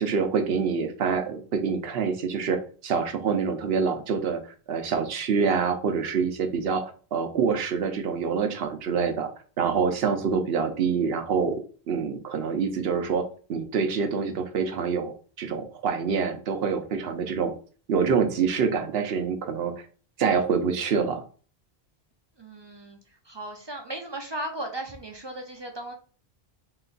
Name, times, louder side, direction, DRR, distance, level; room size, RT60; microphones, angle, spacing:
voice 1, 0.0-4.4 4.7-9.3 9.6-11.6 11.9-15.1 15.4-17.5 17.9-19.7 20.2-21.2, right 6 dB, 70° right, 7 dB, 0.9 m, -26 dB
voice 2, 22.4-23.0 23.2-25.9, right 1 dB, 35° right, 3 dB, 0.5 m, -36 dB
3.3 x 3.0 x 3.8 m, 0.40 s
omnidirectional pair, 1.1 m